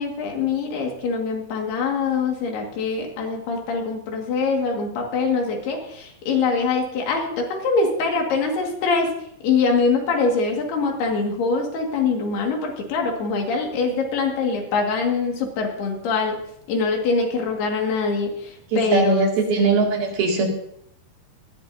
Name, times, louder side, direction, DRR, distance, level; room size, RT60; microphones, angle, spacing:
voice 1, 0.0-16.4 16.7-19.9, left 4 dB, 80° left, 1 dB, 4.1 m, -24 dB
voice 2, 18.7-20.5, right 3 dB, 70° right, 0 dB, 4.3 m, -20 dB
19.0 x 14.5 x 2.7 m, 0.71 s
omnidirectional pair, 4.5 m